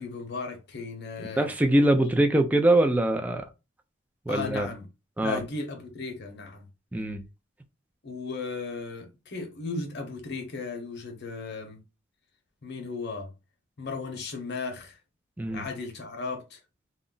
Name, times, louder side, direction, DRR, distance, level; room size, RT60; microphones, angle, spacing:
voice 1, 0.0-1.5 4.3-4.9 5.2-6.6 8.0-11.8 12.6-13.3 13.8-15.0 15.5-16.6, left 4 dB, 55° left, 0.8 m, -35 dB
voice 2, 1.2-3.4 4.3-4.7 5.2-5.4 6.9-7.2 15.4-15.6, right 1 dB, 10° right, 0.4 m, -23 dB
2.4 x 2.0 x 3.7 m
head